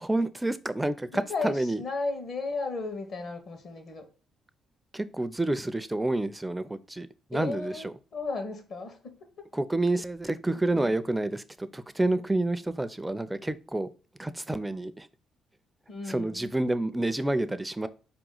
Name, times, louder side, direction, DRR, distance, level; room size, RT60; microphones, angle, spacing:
voice 1, 0.1-1.8 4.9-7.9 9.5-13.9 14.2-15.1 16.1-17.9, right 2 dB, 10° right, 0.4 m, -29 dB
voice 2, 1.1-4.0 7.3-9.2 10.7-11.0 15.9-16.5, left 3 dB, 60° left, 1.2 m, -35 dB
4.8 x 2.9 x 3.8 m
cardioid pair, 90°, 0 cm